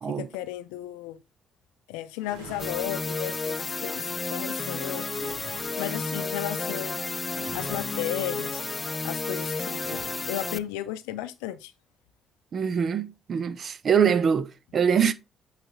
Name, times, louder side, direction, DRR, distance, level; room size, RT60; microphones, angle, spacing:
voice 1, 0.1-1.2 1.9-5.1 5.8-7.0 7.5-8.6 9.0-10.0 10.3-11.7, left 13 dB, 80° left, 0.5 m, -34 dB
sound 1, 2.2-3.8 5.1-6.0 7.3-8.3 9.8-10.7, right 2 dB, 85° right, 1.7 m, -46 dB
sound 2, 2.6-10.6, left 3 dB, 30° left, 0.5 m, -32 dB
voice 2, 12.5-15.1, right 7 dB, 55° right, 0.6 m, -24 dB
8.2 x 3.3 x 3.9 m
hypercardioid pair, 50°, 0 cm